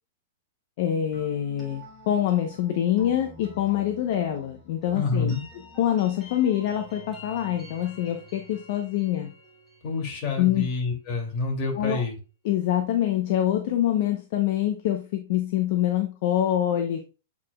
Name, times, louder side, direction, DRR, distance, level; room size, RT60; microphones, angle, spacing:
voice 1, 0.8-5.4 5.8-9.3 10.4-10.7 11.8-12.0 12.4-17.0, left 11 dB, 50° left, 5 dB, 0.8 m, -25 dB
sound 1, 1.1-10.9, left 1 dB, 10° left, 2.9 m, -49 dB
voice 2, 4.9-5.4 9.8-12.2, left 3 dB, 35° left, -1 dB, 2.7 m, -28 dB
8.2 x 4.9 x 2.4 m, 0.33 s
hypercardioid pair, 150°, 0 cm